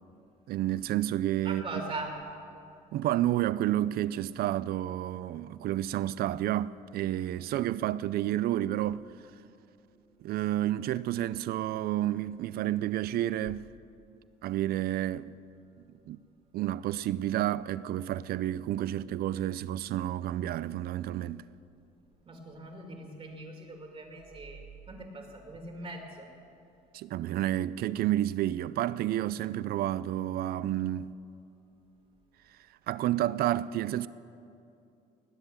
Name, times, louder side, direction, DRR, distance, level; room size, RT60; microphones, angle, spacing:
voice 1, 0.5-1.8 2.9-9.1 10.2-13.7 14.4-15.4 16.1-16.2 16.5-21.4 26.9-31.1 32.9-34.1, right 13 dB, 65° right, 0.4 m, -30 dB
voice 2, 1.4-2.2 22.3-26.3, right 2 dB, 35° right, 2.3 m, -41 dB
19.5 x 7.9 x 7.3 m
cardioid pair, 110°, 17 cm